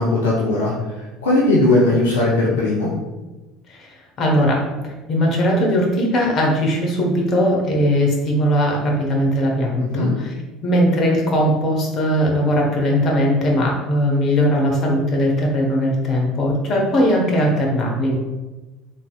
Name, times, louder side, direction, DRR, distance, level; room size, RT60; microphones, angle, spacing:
voice 1, 0.0-2.9 9.8-10.1, left 2 dB, 70° left, -5 dB, 0.6 m, -18 dB
voice 2, 3.7-4.6 5.1-10.3 10.6-18.2, equal, 40° left, -1 dB, 1.1 m, -19 dB
4.0 x 3.6 x 2.3 m, 1.1 s
figure-of-eight pair, 65°, 0 cm